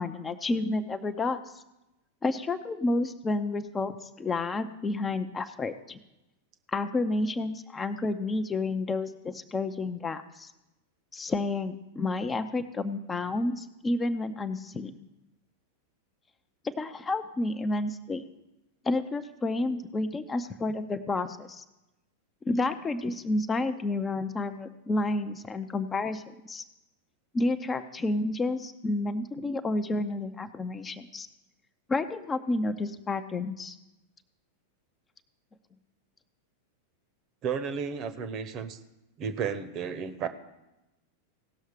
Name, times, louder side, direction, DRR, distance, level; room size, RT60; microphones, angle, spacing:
voice 1, 0.0-1.6 2.2-6.0 6.7-10.5 11.1-14.9 16.8-18.2 18.8-21.6 22.4-26.6 27.3-31.3 31.9-33.8, left 2 dB, 15° left, 9 dB, 0.6 m, -30 dB
voice 2, 37.4-38.8 39.2-40.3, right 6 dB, 35° right, 12 dB, 0.9 m, -33 dB
17.5 x 6.4 x 5.0 m, 0.95 s
figure-of-eight pair, 90°, 0 cm